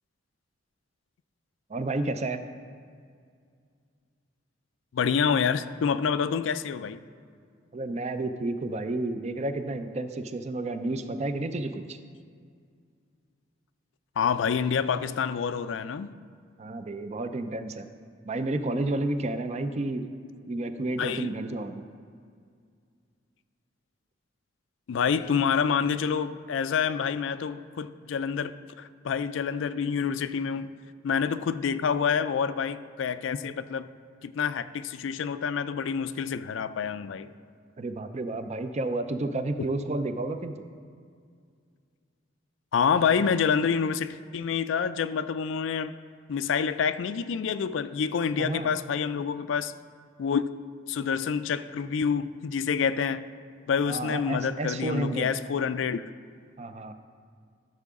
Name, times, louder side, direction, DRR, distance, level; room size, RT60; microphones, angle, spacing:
voice 1, 1.7-2.4 7.7-12.0 16.6-17.9 18.2-20.0 20.5-21.9 37.8-40.5 48.4-48.7 53.9-55.3 56.6-56.9, right 2 dB, 35° right, 9 dB, 0.4 m, -31 dB
voice 2, 4.9-7.0 14.2-16.1 21.0-21.3 24.9-30.7 31.0-33.9 34.2-37.3 42.7-45.9 46.3-49.7 50.2-50.4 50.9-53.3 53.7-56.0, left 6 dB, 75° left, 13 dB, 0.4 m, -27 dB
13.5 x 6.7 x 3.6 m, 2.2 s
head